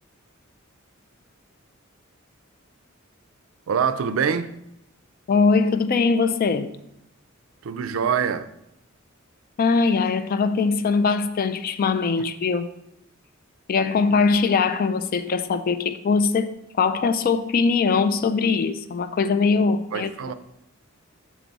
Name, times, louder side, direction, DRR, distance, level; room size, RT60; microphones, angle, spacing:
voice 1, 3.7-4.5 7.6-8.5 19.9-20.3, right 7 dB, 80° right, 0.4 m, -24 dB
voice 2, 5.3-6.8 9.6-12.7 13.7-20.1, left 4 dB, 45° left, 0.3 m, -21 dB
6.0 x 4.0 x 4.6 m
head